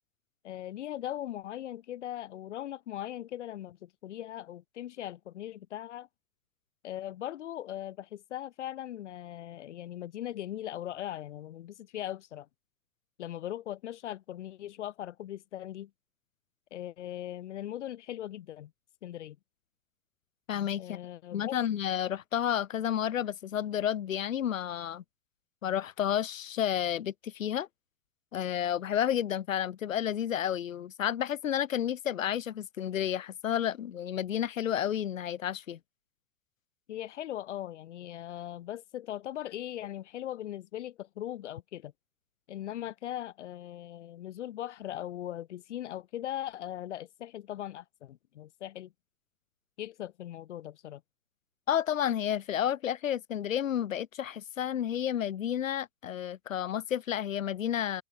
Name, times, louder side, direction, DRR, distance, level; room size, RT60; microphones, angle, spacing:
voice 1, 0.4-6.1 6.8-12.5 13.2-15.9 16.7-18.7 19.0-19.4 20.8-21.6 36.9-41.9 42.5-48.9 49.8-51.0, left 12 dB, 65° left, 2.1 m, -39 dB
voice 2, 20.5-21.0 21.3-25.0 25.6-27.7 28.3-35.8 51.7-58.0, left 10 dB, 85° left, 0.7 m, -31 dB
figure-of-eight pair, 105°, 39 cm